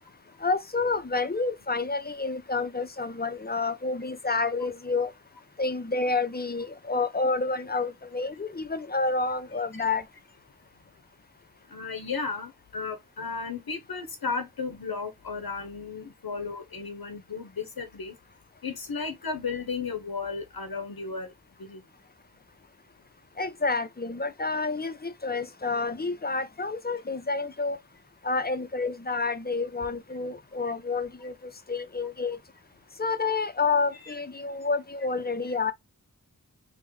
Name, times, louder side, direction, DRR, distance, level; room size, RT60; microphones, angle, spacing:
voice 1, 0.4-5.1 5.6-10.0 23.4-27.8 28.2-32.4 33.0-35.7, left 3 dB, 30° left, 0.4 m, -29 dB
voice 2, 11.7-18.1 18.6-21.3 21.6-21.8 34.0-34.1, left 4 dB, 80° left, 0.7 m, -34 dB
3.6 x 2.1 x 3.1 m
wide cardioid pair, 45°, 36 cm